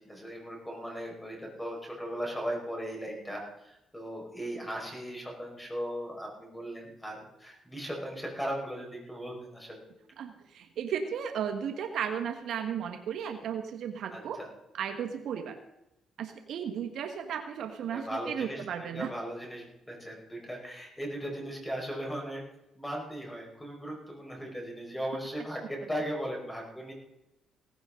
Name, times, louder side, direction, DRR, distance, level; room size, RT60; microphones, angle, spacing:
voice 1, 0.1-9.9 14.1-14.5 17.9-18.6 18.9-22.4 22.8-26.9, equal, 5° left, 0 dB, 5.1 m, -37 dB
voice 2, 10.2-14.4 14.7-15.6 16.2-19.1, right 8 dB, 70° right, 6 dB, 1.4 m, -35 dB
17.0 x 16.0 x 3.8 m, 0.90 s
cardioid pair, 90°, 0 cm